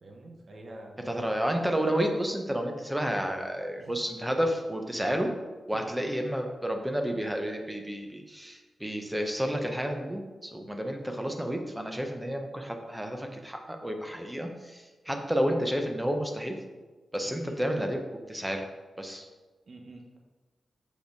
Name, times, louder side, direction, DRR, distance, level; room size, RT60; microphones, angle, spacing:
voice 1, 0.0-1.2 3.8-3.9 5.7-5.9 15.1-15.2 17.4-17.6 19.7-20.2, right 2 dB, 50° right, 0 dB, 1.1 m, -47 dB
voice 2, 1.1-5.3 5.7-16.6 17.1-18.0 18.3-18.6 19.0-19.3, equal, 10° right, 4 dB, 0.9 m, -31 dB
6.9 x 5.0 x 4.6 m, 1.3 s
wide cardioid pair, 130°, 0 cm